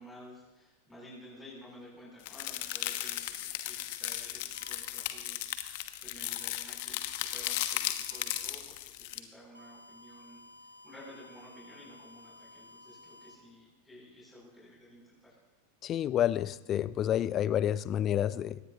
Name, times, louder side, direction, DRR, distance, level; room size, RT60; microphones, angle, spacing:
voice 1, 0.0-5.5 6.0-10.4 10.8-15.4, left 1 dB, 10° left, -5 dB, 7.7 m, -53 dB
sound 1, 2.2-9.2, left 14 dB, 50° left, 1.2 m, -36 dB
sound 2, 4.6-4.8 6.3-6.6 8.1-8.3 9.6-13.4, left 2 dB, 90° right, 1.8 m, -54 dB
voice 2, 15.8-18.6, left 11 dB, 30° left, 18 dB, 0.6 m, -29 dB
23.0 x 20.0 x 2.9 m, 1.0 s
figure-of-eight pair, 90°, 0 cm